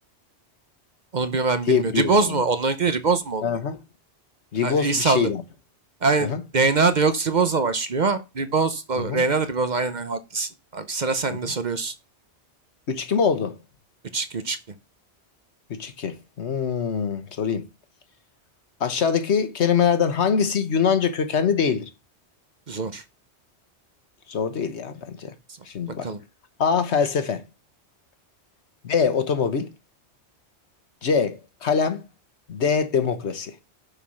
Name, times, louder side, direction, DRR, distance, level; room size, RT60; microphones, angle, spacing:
voice 1, 1.1-3.4 4.6-5.3 6.0-11.9 14.1-14.6 22.7-23.0 26.0-26.2, right 4 dB, 45° right, 0.9 m, -23 dB
voice 2, 1.7-2.4 3.4-3.8 4.5-5.4 6.2-6.4 9.0-9.2 11.3-11.5 12.9-13.5 15.8-17.6 18.8-21.9 24.3-25.3 25.7-26.1 26.6-27.4 28.8-29.7 31.0-32.0 32.5-33.5, left 6 dB, 75° left, 1.4 m, -23 dB
6.7 x 5.6 x 6.3 m
omnidirectional pair, 1.2 m